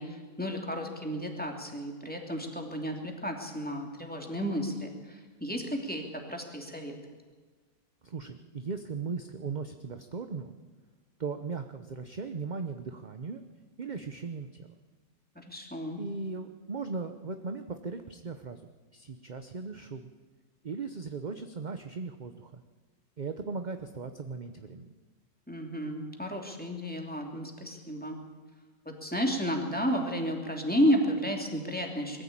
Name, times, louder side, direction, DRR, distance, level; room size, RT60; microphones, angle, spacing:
voice 1, 0.0-6.0 6.3-6.9 15.3-16.0 25.5-28.2 28.8-32.2, equal, 5° left, 1 dB, 2.8 m, -32 dB
voice 2, 8.0-10.5 11.2-13.4 13.8-14.7 16.0-18.6 18.9-20.1 20.6-22.6 23.2-24.9, right 4 dB, 35° right, 8 dB, 0.8 m, -38 dB
21.5 x 14.5 x 8.7 m, 1.4 s
omnidirectional pair, 1.6 m